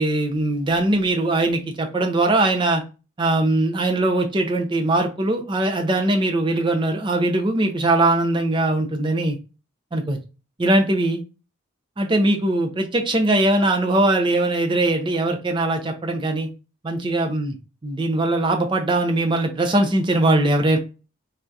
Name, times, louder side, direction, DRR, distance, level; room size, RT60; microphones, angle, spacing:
voice 1, 0.0-2.8 3.2-9.4 9.9-10.2 10.6-11.2 12.0-16.5 16.8-17.5 17.8-20.8, right 2 dB, 25° right, 3 dB, 0.5 m, -21 dB
3.4 x 2.7 x 2.3 m, 0.31 s
head